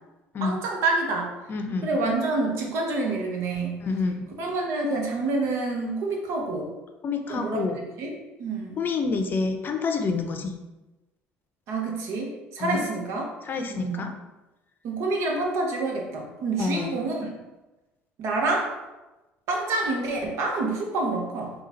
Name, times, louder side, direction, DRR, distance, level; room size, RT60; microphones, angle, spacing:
voice 1, 0.4-1.3 1.8-3.8 4.4-6.7 7.3-8.1 8.4-8.8 11.7-13.3 13.7-14.1 14.8-17.3 18.2-18.7 19.5-21.5, right 3 dB, 70° right, 1 dB, 1.0 m, -27 dB
voice 2, 1.5-2.0 3.8-4.2 7.0-7.8 8.8-10.6 12.6-12.8 13.4-14.2 16.6-17.0, left 4 dB, 40° left, 5 dB, 0.5 m, -28 dB
3.8 x 2.4 x 4.1 m, 1.1 s
supercardioid pair, 85°, 5 cm